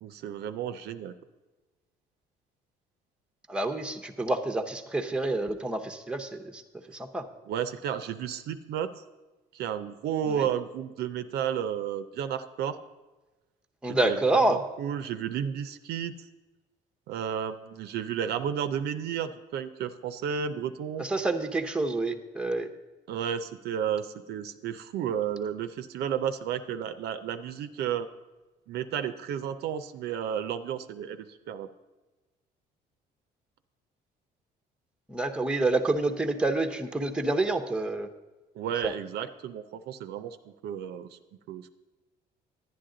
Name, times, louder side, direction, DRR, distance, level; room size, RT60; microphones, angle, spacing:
voice 1, 0.0-1.1 7.5-8.9 9.5-12.8 13.8-16.1 17.1-21.1 23.1-28.1 28.7-31.7 38.6-40.4 40.6-41.1 41.5-41.7, right 8 dB, 75° right, 10 dB, 0.6 m, -32 dB
voice 2, 3.5-6.6 6.9-7.3 10.3-10.5 13.8-14.6 21.0-22.7 35.1-38.1 38.8-38.9, right 2 dB, 5° right, 5 dB, 0.7 m, -28 dB
10.5 x 10.0 x 3.8 m, 1.2 s
cardioid pair, 110°, 17 cm